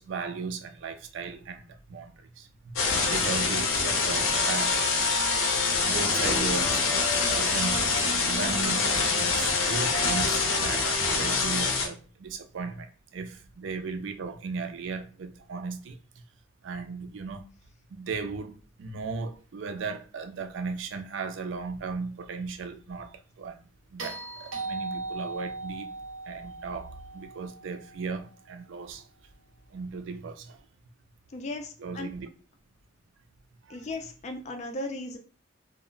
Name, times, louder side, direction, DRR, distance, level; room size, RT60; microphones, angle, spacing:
voice 1, 0.0-2.8 3.1-4.7 5.9-7.0 7.3-8.9 9.1-16.0 16.6-17.5 17.9-23.6 23.9-25.9 26.3-29.1 29.7-30.6 31.8-32.3 33.7-33.9, right 4 dB, 65° right, 0.4 m, -36 dB
sound 1, 2.8-11.9, left 4 dB, 80° left, 0.6 m, -25 dB
sound 2, 24.0-28.3 30.5-30.6, right 3 dB, 85° right, 0.8 m, -38 dB
voice 2, 31.3-32.1 33.7-35.2, left 2 dB, 35° left, 0.3 m, -36 dB
2.1 x 2.0 x 3.7 m
head